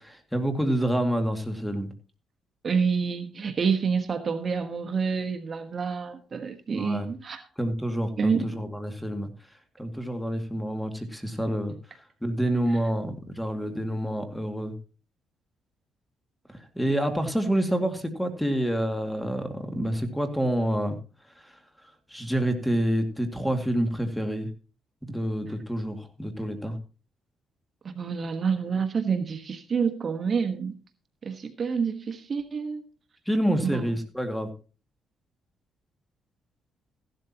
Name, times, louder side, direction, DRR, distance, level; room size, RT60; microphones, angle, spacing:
voice 1, 0.0-1.9 6.7-7.1 7.6-9.3 9.8-11.7 12.2-14.7 16.8-21.0 21.4-21.6 22.1-24.5 25.1-26.7 33.3-34.5, right 1 dB, 5° left, 2.2 m, -28 dB
voice 2, 2.6-7.4 8.2-8.5 27.8-30.7 31.2-32.8 33.6-33.8, right 5 dB, 45° right, 1.3 m, -28 dB
15.0 x 12.0 x 2.9 m
cardioid pair, 90°, 0 cm